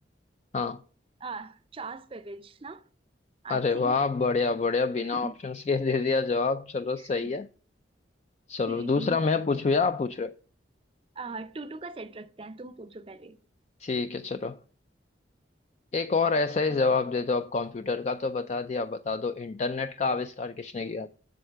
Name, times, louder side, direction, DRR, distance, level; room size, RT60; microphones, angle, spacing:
voice 1, 1.2-2.9 3.4-4.0 5.0-5.4 7.0-7.3 8.7-9.2 11.2-13.4 16.7-17.0, right 3 dB, 30° right, 0.5 m, -40 dB
voice 2, 3.5-7.4 8.5-10.3 13.8-14.6 15.9-21.1, left 4 dB, 35° left, 0.3 m, -27 dB
7.9 x 6.4 x 6.6 m
head